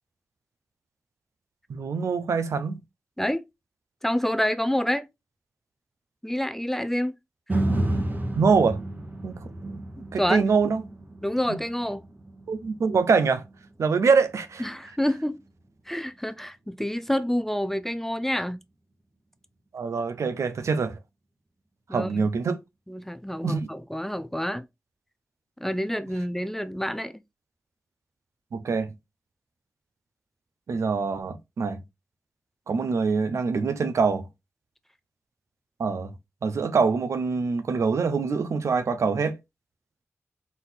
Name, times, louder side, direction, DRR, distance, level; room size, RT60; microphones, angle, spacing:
voice 1, 1.7-2.8 8.3-8.8 9.2-9.3 9.6-9.8 10.1-10.8 12.5-13.4 13.8-14.7 19.7-21.0 21.9-22.6 23.4-23.7 28.5-28.9 30.7-31.8 32.7-34.3 35.8-36.1 36.4-39.4, right 5 dB, 80° right, 0.6 m, -24 dB
voice 2, 3.2-3.5 4.0-5.1 6.2-7.2 7.5-7.6 10.2-10.4 11.2-12.0 14.6-15.4 15.9-18.6 21.9-22.3 22.9-24.7 25.6-27.2, equal, 5° left, 0.5 m, -28 dB
sound 1, 7.5-15.7 16.1-16.2, right 1 dB, 35° right, 1.1 m, -32 dB
4.1 x 2.6 x 3.9 m
cardioid pair, 50°, 5 cm